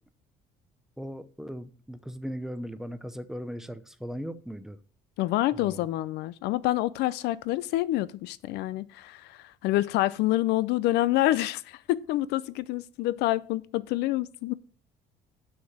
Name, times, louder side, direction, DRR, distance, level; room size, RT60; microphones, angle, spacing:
voice 1, 1.0-4.8 5.5-5.9, equal, 5° right, 0.7 m, -38 dB
voice 2, 5.2-14.5, left 15 dB, 85° left, 0.5 m, -27 dB
6.3 x 5.9 x 7.2 m
cardioid pair, 110°, 17 cm